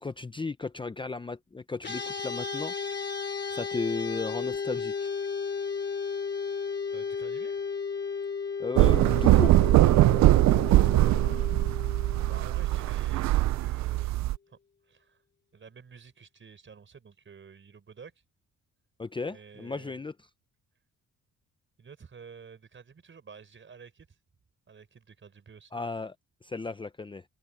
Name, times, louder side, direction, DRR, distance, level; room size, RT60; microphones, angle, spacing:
voice 1, 0.0-2.7 3.5-5.1 8.6-9.6 19.0-20.1 25.7-26.2 26.4-27.2, left 4 dB, 15° left, 0.6 m, -35 dB
sound 1, 1.8-13.3, left 5 dB, 35° left, 2.7 m, -34 dB
voice 2, 6.9-7.6 11.2-11.6 12.2-14.2 14.5-14.6 14.8-15.2 15.5-18.2 19.2-20.0 21.8-24.2 24.7-25.8, right 6 dB, 40° right, 5.1 m, -50 dB
sound 2, 8.8-14.4, right 16 dB, 65° right, 0.5 m, -21 dB
open air
cardioid pair, 90°, 30 cm